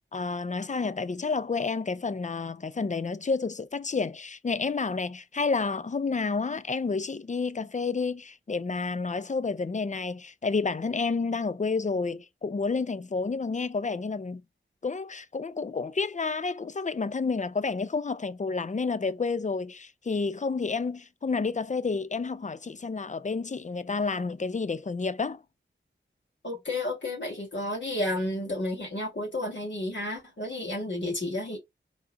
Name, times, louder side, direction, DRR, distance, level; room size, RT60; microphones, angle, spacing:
voice 1, 0.1-14.4 14.8-25.4, left 4 dB, 40° left, 0.5 m, -30 dB
voice 2, 26.4-31.6, left 1 dB, 70° left, 1.9 m, -31 dB
4.6 x 2.8 x 2.5 m
wide cardioid pair, 45°, 20 cm